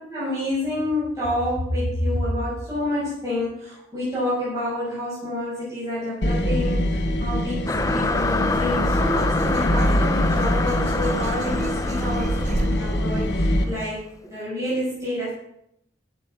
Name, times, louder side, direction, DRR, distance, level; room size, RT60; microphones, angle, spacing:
voice 1, 0.1-15.3, left 1 dB, 15° right, -10 dB, 5.8 m, -28 dB
sound 1, 6.2-13.6, left 1 dB, 80° left, 1.4 m, -24 dB
sound 2, 7.7-13.7, left 3 dB, 20° left, 0.5 m, -27 dB
sound 3, 8.2-12.7, right 2 dB, 40° right, 0.5 m, -36 dB
15.0 x 6.4 x 6.2 m, 0.76 s
head